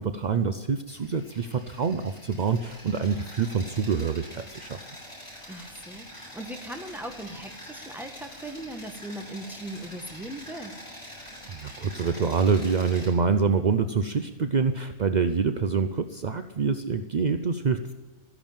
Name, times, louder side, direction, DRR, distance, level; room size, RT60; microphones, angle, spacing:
voice 1, 0.0-4.8 11.4-17.9, right 5 dB, 50° right, 10 dB, 0.5 m, -26 dB
sound 1, 0.9-13.1, equal, 20° left, 7.5 m, -45 dB
voice 2, 5.5-10.7, right 1 dB, ahead, 4 dB, 1.6 m, -39 dB
14.0 x 11.0 x 8.9 m, 1.3 s
omnidirectional pair, 1.5 m